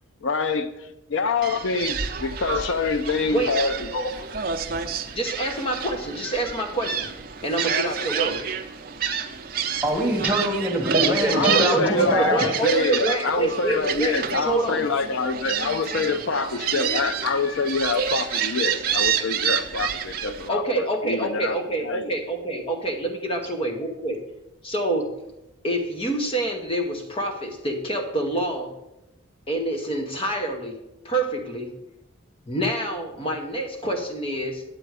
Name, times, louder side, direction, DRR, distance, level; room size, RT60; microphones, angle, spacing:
voice 1, 0.2-4.3 11.3-22.1, left 4 dB, 65° left, 9 dB, 0.5 m, -26 dB
Gull seagull, 1.4-20.5, right 7 dB, 45° right, 0.6 m, -28 dB
voice 2, 5.1-7.1 7.4-8.5 11.0-14.8 20.5-24.2 24.6-25.2 25.6-28.7 29.5-31.7 32.5-34.6, right 2 dB, 25° left, 3 dB, 0.9 m, -27 dB
voice 3, 9.8-12.4, right 1 dB, 10° right, -1 dB, 1.5 m, -24 dB
9.1 x 7.7 x 4.8 m, 0.91 s
head